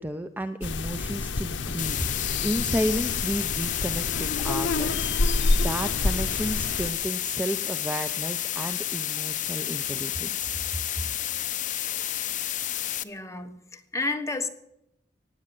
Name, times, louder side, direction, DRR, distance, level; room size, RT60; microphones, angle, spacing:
voice 1, 0.0-5.2 5.6-10.5, equal, 10° right, 9 dB, 0.6 m, -32 dB
sound 1, 0.6-6.9, left 3 dB, 85° left, 0.8 m, -28 dB
sound 2, 1.8-13.0, left 12 dB, 45° left, 0.8 m, -30 dB
voice 2, 13.0-14.5, left 3 dB, 15° left, 6 dB, 1.3 m, -31 dB
16.5 x 9.7 x 7.7 m, 0.81 s
head